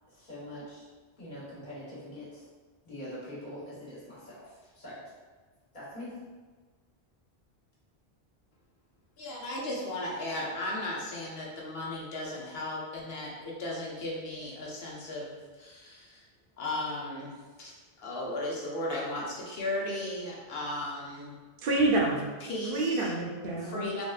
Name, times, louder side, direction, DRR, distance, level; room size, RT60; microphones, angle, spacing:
voice 1, 0.1-0.8 1.2-2.4 2.8-5.0 5.7-6.2, left 1 dB, 50° left, -9 dB, 1.2 m, -43 dB
voice 2, 9.2-16.2 16.6-17.3 17.6-17.7 18.0-21.4 22.4-23.1 23.6-24.0, left 1 dB, 70° left, -3 dB, 0.9 m, -36 dB
voice 3, 21.6-22.3 22.7-24.0, right 2 dB, 65° right, -1 dB, 0.7 m, -28 dB
3.5 x 2.1 x 2.3 m, 1.4 s
omnidirectional pair, 1.0 m